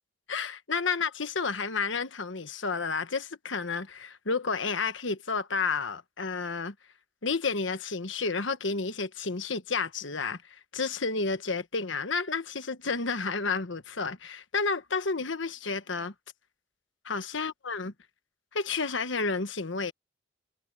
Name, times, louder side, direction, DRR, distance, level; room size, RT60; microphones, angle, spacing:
voice 1, 0.3-6.7 7.2-16.1 17.0-17.9 18.5-19.9, left 4 dB, 75° left, 1.3 m, -31 dB
head